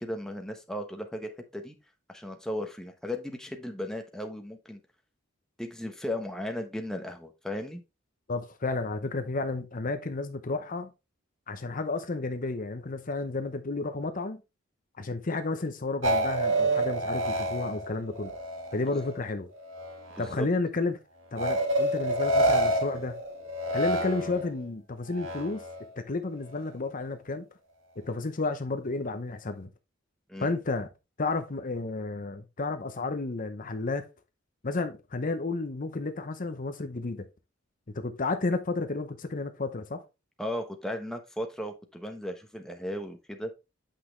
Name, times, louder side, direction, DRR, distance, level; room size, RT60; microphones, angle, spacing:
voice 1, 0.0-1.8 2.1-4.8 5.6-7.8 20.2-20.5 30.3-30.5 40.4-43.5, left 1 dB, 5° left, 1.1 m, -36 dB
voice 2, 8.3-10.9 11.5-14.4 15.0-18.3 18.7-19.5 20.2-21.0 21.3-23.2 23.7-25.6 26.0-27.4 28.1-29.7 30.4-30.9 31.2-34.1 34.6-37.3 37.9-40.0, left 3 dB, 40° left, 0.8 m, -32 dB
sound 1, 16.0-19.2 19.6-20.4 21.4-24.6 25.1-25.9, right 1 dB, 80° right, 2.0 m, -28 dB
8.6 x 5.8 x 3.2 m
head